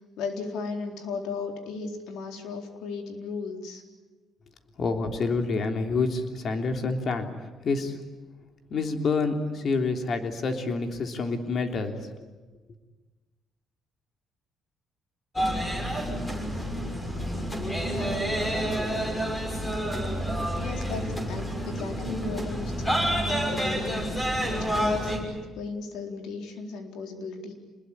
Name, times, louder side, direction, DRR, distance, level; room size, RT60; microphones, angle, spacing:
voice 1, 0.2-3.8 17.8-18.9 20.6-27.5, left 4 dB, 85° left, 4 dB, 4.1 m, -36 dB
voice 2, 4.8-7.3 7.6-8.0 8.7-11.9, left 4 dB, 50° left, 5 dB, 3.4 m, -27 dB
sound 1, 15.4-25.2, equal, 15° left, 6.3 m, -29 dB
27.5 x 21.0 x 10.0 m, 1.3 s
cardioid pair, 110°, 0 cm